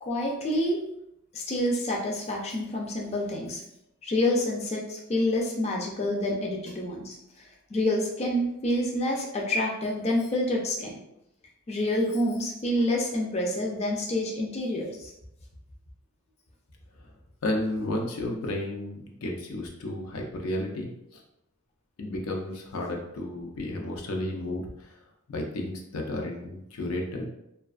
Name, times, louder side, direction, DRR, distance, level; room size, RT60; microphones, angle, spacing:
voice 1, 0.0-0.8 1.3-3.6 4.0-7.4 7.7-10.9 11.7-15.1, left 1 dB, 30° left, -1 dB, 0.4 m, -28 dB
voice 2, 17.4-21.2 22.0-24.9 25.3-27.3, left 1 dB, 90° left, 1 dB, 0.5 m, -32 dB
2.4 x 2.3 x 2.4 m, 0.82 s
head